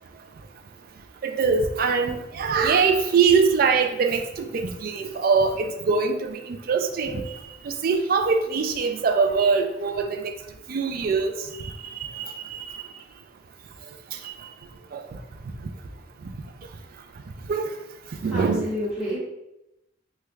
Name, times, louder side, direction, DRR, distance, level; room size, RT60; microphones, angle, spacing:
voice 1, 1.2-4.2 4.5-7.2 7.8-10.3 10.7-11.3 12.1-12.3 14.9-15.0 17.5-17.7 18.2-18.7, right 5 dB, 50° right, 6 dB, 0.3 m, -22 dB
voice 2, 18.1-19.2, left 1 dB, 5° right, -10 dB, 1.0 m, -30 dB
3.3 x 2.3 x 3.1 m, 0.88 s
head